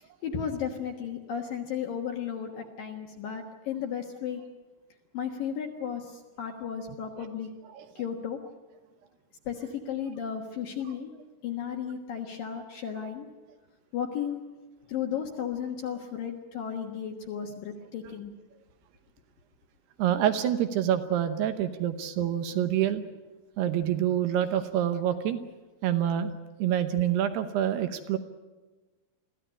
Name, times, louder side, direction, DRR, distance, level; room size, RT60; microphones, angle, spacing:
voice 1, 0.2-4.4 5.1-7.5 8.0-8.4 9.5-11.1 11.4-13.3 13.9-14.4 14.9-18.3, left 8 dB, 65° left, 3 dB, 2.3 m, -34 dB
voice 2, 20.0-23.0 23.6-25.4 25.8-26.3 26.6-28.2, right 10 dB, 75° right, 10 dB, 2.5 m, -27 dB
23.0 x 15.5 x 9.9 m, 1.2 s
omnidirectional pair, 5.8 m